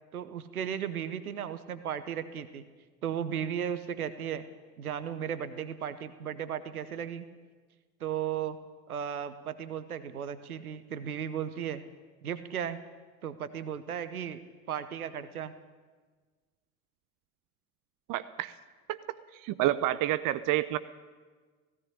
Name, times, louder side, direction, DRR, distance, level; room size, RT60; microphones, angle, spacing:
voice 1, 0.1-2.6 3.0-4.5 4.8-7.3 8.0-8.6 8.9-11.8 12.2-12.8 13.2-14.4 14.7-15.5, right 9 dB, 85° right, 13 dB, 0.9 m, -35 dB
voice 2, 18.1-18.5 18.9-19.0 19.3-20.8, right 14 dB, 50° right, 15 dB, 0.8 m, -29 dB
17.5 x 16.0 x 9.9 m, 1.4 s
figure-of-eight pair, 65°, 42 cm